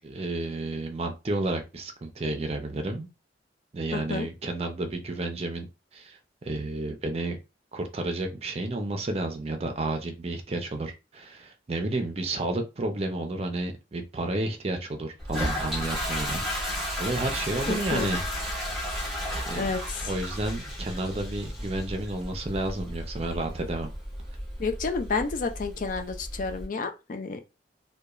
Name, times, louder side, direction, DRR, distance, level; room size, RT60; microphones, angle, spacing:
voice 1, 0.0-3.1 3.7-5.7 5.9-7.4 7.7-16.4 16.7-18.2 19.5-19.7 20.0-23.9, right 2 dB, 35° right, 0.4 m, -31 dB
voice 2, 3.9-4.3 17.7-18.1 19.6-20.1 24.6-27.4, left 4 dB, 45° left, 0.4 m, -30 dB
Toilet flush, 15.2-26.6, equal, ahead, 1.1 m, -33 dB
2.9 x 2.2 x 2.3 m
head